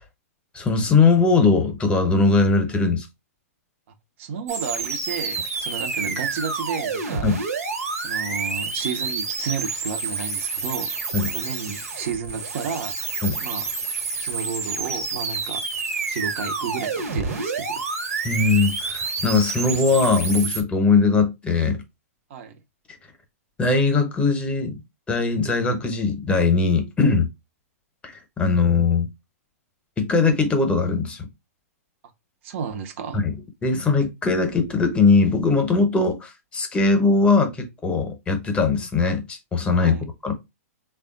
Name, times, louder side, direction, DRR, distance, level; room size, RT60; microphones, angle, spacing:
voice 1, 0.5-3.1 7.2-7.4 11.1-11.3 13.2-13.4 18.2-21.8 23.6-24.8 25.1-27.3 28.0-29.1 30.0-31.3 33.1-33.3 33.6-40.3, left 4 dB, 15° left, 0.9 m, -20 dB
voice 2, 4.2-7.3 8.0-10.9 11.3-13.1 13.4-13.7 14.2-15.6 16.1-17.8 22.3-22.6 32.4-33.2 39.8-40.0, right 6 dB, 55° right, 0.7 m, -32 dB
sound 1, 4.5-20.6, right 4 dB, 80° right, 1.2 m, -29 dB
3.4 x 2.3 x 3.7 m
hypercardioid pair, 125°, 8 cm